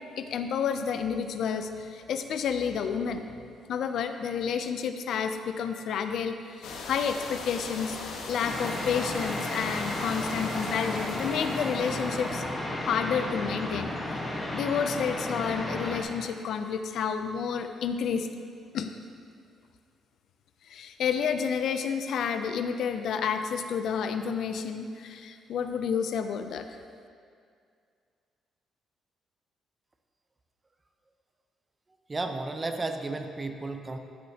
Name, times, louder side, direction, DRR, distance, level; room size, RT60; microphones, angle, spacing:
voice 1, 0.2-3.2 3.7-8.0 8.3-12.4 12.8-14.2 14.5-18.3 18.7-19.0 20.6-26.7, left 7 dB, 70° left, 8 dB, 0.4 m, -30 dB
sound 1, 6.6-12.5, left 3 dB, 90° left, 1.0 m, -39 dB
sound 2, 8.4-16.0, left 1 dB, 20° left, 1.2 m, -33 dB
voice 2, 32.1-34.0, right 3 dB, 25° right, 6 dB, 0.6 m, -33 dB
12.0 x 6.3 x 2.8 m, 2.3 s
cardioid pair, 90°, 0 cm